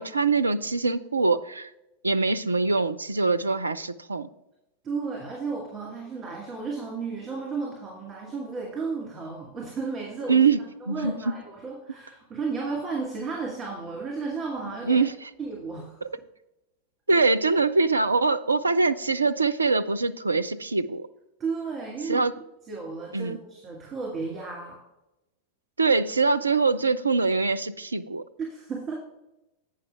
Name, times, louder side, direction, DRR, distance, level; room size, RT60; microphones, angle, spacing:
voice 1, 0.0-1.7 2.0-4.3 10.3-10.6 10.9-11.1 14.9-15.3 17.1-21.1 22.1-22.3 23.1-23.4 25.8-28.2, right 4 dB, 80° right, 12 dB, 0.3 m, -23 dB
voice 2, 4.8-10.5 10.8-15.1 15.4-16.1 21.4-22.2 22.7-24.8 28.4-28.9, right 4 dB, 20° right, -2 dB, 2.2 m, -33 dB
9.0 x 5.7 x 4.7 m, 0.94 s
figure-of-eight pair, 90°, 0 cm